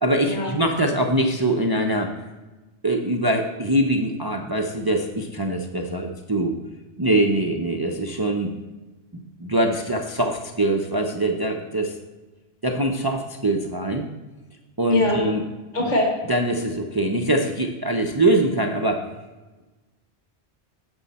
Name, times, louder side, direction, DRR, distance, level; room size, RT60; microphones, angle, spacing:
voice 1, 0.0-2.1 2.8-6.6 7.0-8.5 9.4-11.9 12.6-14.1 14.8-15.4 15.8-15.9 16.3-19.1, right 1 dB, 30° right, 2 dB, 0.5 m, -23 dB
voice 2, 15.7-16.1, left 1 dB, 40° left, -2 dB, 1.8 m, -22 dB
9.7 x 6.4 x 4.2 m, 1.2 s
omnidirectional pair, 1.1 m